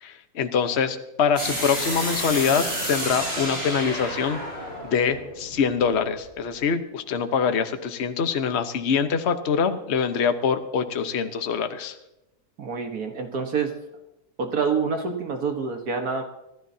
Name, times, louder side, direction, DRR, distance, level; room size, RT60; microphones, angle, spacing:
voice 1, 0.0-4.4 4.8-11.9, left 6 dB, 45° left, 8 dB, 1.2 m, -24 dB
sound 1, 1.4-6.2, equal, 35° right, 7.2 m, -30 dB
voice 2, 12.6-13.7 14.4-16.2, right 5 dB, 70° right, 4 dB, 1.8 m, -27 dB
25.0 x 13.5 x 2.8 m, 0.90 s
omnidirectional pair, 1.7 m